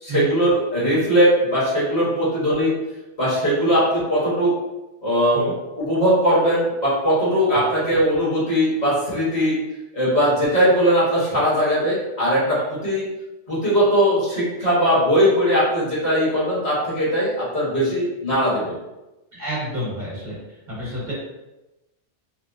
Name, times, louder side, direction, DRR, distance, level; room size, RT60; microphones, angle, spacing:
voice 1, 0.0-2.7 3.2-4.6 5.0-9.6 9.9-13.0 13.5-18.7, equal, 40° left, -8 dB, 1.3 m, -20 dB
voice 2, 19.3-20.4 20.7-21.1, right 1 dB, 40° right, -7 dB, 1.0 m, -30 dB
3.0 x 2.9 x 2.6 m, 1.0 s
omnidirectional pair, 1.2 m